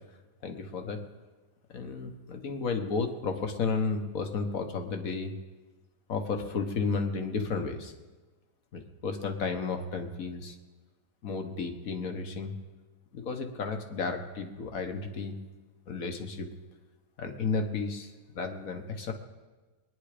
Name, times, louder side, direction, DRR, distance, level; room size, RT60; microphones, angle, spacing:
voice 1, 0.4-1.0 1.7-5.3 6.1-7.9 8.7-10.6 11.2-12.5 13.1-15.4 15.9-16.5 17.2-19.1, left 4 dB, 55° left, 5 dB, 1.5 m, -33 dB
22.0 x 10.0 x 5.0 m, 1.3 s
omnidirectional pair, 1.9 m